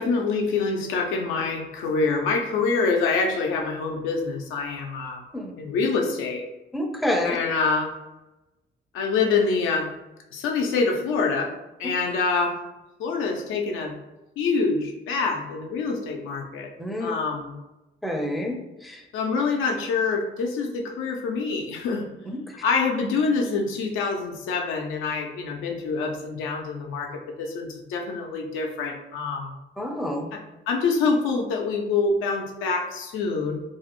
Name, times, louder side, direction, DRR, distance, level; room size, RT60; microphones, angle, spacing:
voice 1, 0.0-5.2 5.6-6.4 7.2-7.9 8.9-9.9 10.3-11.5 11.8-12.6 13.0-13.9 14.4-16.7 17.0-17.5 19.1-22.1 22.6-29.6 30.7-33.6, left 4 dB, 90° left, 2 dB, 0.5 m, -25 dB
voice 2, 6.7-7.4 16.8-17.1 18.0-18.5 18.8-19.0 22.3-22.4 29.8-30.3, left 1 dB, ahead, 1 dB, 0.4 m, -27 dB
2.4 x 2.0 x 2.9 m, 1.0 s
cardioid pair, 90°, 20 cm